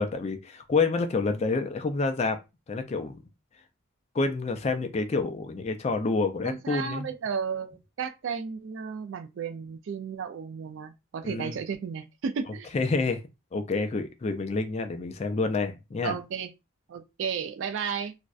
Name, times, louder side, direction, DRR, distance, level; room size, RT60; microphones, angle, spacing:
voice 1, 0.0-2.4 2.7-3.2 4.1-7.1 11.3-11.6 12.7-13.2 13.5-16.2, left 3 dB, 30° left, 0.3 m, -28 dB
voice 2, 6.4-12.7 16.0-16.5 16.9-18.1, right 6 dB, 65° right, 0.3 m, -33 dB
2.5 x 2.1 x 2.3 m
head